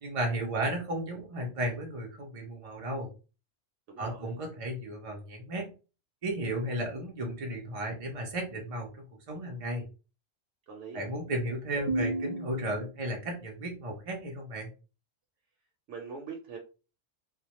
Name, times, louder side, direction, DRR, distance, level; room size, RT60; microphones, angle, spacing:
voice 1, 0.0-3.1 4.0-5.7 6.2-9.8 10.9-14.7, right 1 dB, 60° right, 0 dB, 0.3 m, -34 dB
voice 2, 3.9-4.3 10.7-11.1 15.9-16.6, right 5 dB, 75° right, 1 dB, 0.9 m, -42 dB
2.1 x 2.0 x 2.8 m, 0.33 s
omnidirectional pair, 1.2 m